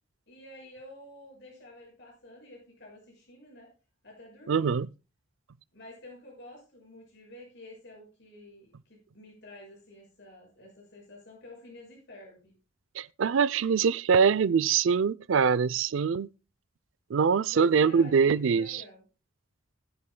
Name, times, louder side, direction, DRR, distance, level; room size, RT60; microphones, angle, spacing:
voice 1, 0.3-3.7 4.0-4.7 5.7-12.5 17.5-19.0, left 1 dB, 60° left, 7.0 m, -50 dB
voice 2, 4.5-4.9 13.0-16.3 17.1-18.8, right 6 dB, 75° right, 0.4 m, -24 dB
20.0 x 7.6 x 2.2 m
head